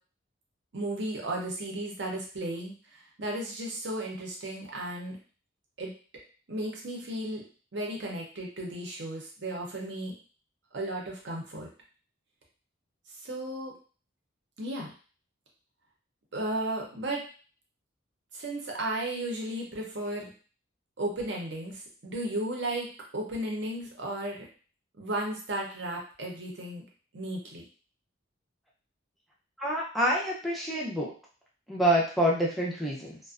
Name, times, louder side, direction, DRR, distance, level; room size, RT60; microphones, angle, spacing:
voice 1, 0.7-5.2 5.8-5.9 6.5-7.4 7.7-10.1 10.7-11.7 13.2-13.7 14.6-14.9 16.3-17.2 18.3-20.3 21.0-22.9 23.1-24.4 25.0-26.8 27.1-27.6, right 1 dB, 55° right, -1 dB, 0.7 m, -34 dB
voice 2, 29.6-31.1 31.7-33.2, right 1 dB, ahead, -4 dB, 0.5 m, -27 dB
2.4 x 2.1 x 2.4 m, 0.39 s
head